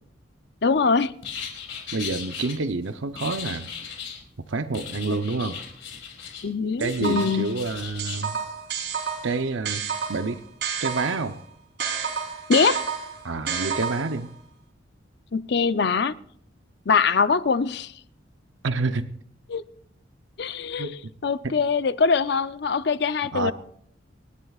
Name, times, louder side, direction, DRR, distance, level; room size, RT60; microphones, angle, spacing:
voice 1, 0.6-1.1 5.1-5.2 6.4-7.6 12.5-12.8 15.3-16.1 16.9-17.9 19.5-19.6 20.4-23.5, left 5 dB, 60° left, 0.5 m, -23 dB
sound 1, 1.2-2.5 3.1-4.2 4.7-6.5 6.8-8.2, left 7 dB, 80° left, 4.6 m, -37 dB
voice 2, 1.9-3.7 4.5-5.6 6.8-8.4 9.2-9.8 10.1-10.4 10.8-11.4 13.2-14.3 18.6-19.1 20.8-20.9 21.4-21.5 23.3-23.5, right 3 dB, 80° right, 0.7 m, -28 dB
sound 2, 6.8-7.5 8.0-11.3 11.8-14.3, right 6 dB, 60° right, 3.5 m, -30 dB
29.5 x 11.5 x 2.4 m
head